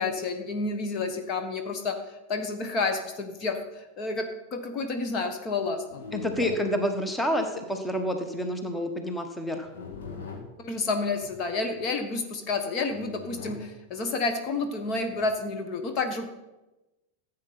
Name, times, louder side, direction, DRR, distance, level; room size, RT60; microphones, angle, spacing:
voice 1, 0.0-2.0 2.3-6.0 10.6-16.3, left 3 dB, 35° left, 6 dB, 1.4 m, -30 dB
sound 1, 5.9-6.7 8.4-8.7 9.6-10.6 11.2-11.8 12.9-13.7 14.6-15.4, left 5 dB, 60° left, 1.8 m, -42 dB
voice 2, 6.1-9.7, equal, 10° left, 6 dB, 1.4 m, -28 dB
14.5 x 8.1 x 5.8 m, 1.0 s
figure-of-eight pair, 90°, 0 cm